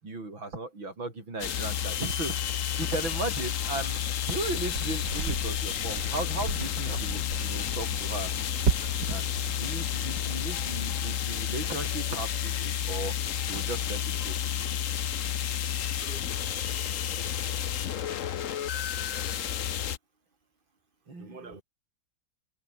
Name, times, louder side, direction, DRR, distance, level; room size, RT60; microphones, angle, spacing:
voice 1, 0.0-8.3 9.1-13.1 13.5-14.4 18.5-18.6 21.1-21.6, right 2 dB, 85° right, 7.3 m, -37 dB
sound 1, 1.4-20.0, left 9 dB, 55° left, 1.0 m, -31 dB
sound 2, 4.4-11.1, right 6 dB, 65° right, 2.6 m, -36 dB
voice 2, 16.0-17.3 21.2-21.6, right 3 dB, 25° right, 3.0 m, -49 dB
omnidirectional pair, 2.1 m